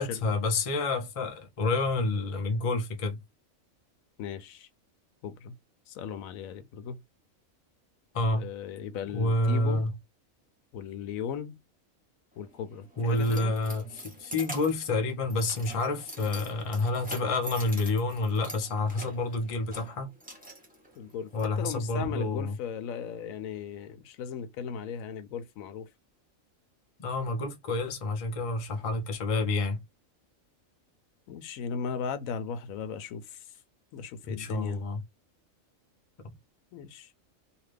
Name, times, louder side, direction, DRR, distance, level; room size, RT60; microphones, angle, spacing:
voice 1, 0.0-3.2 8.1-8.5 9.1-9.9 13.0-20.1 21.3-22.6 27.0-29.8 34.3-35.0, left 2 dB, 40° left, 0.5 m, -29 dB
voice 2, 4.2-4.7 5.2-5.6 5.9-7.0 8.3-9.9 10.7-11.6 12.4-13.5 21.0-25.9 31.3-33.4 33.9-34.8 36.7-37.1, left 7 dB, 90° left, 1.0 m, -37 dB
Keys jangling, 12.4-21.4, right 1 dB, 10° right, 0.8 m, -45 dB
2.7 x 2.4 x 3.3 m
omnidirectional pair, 1.4 m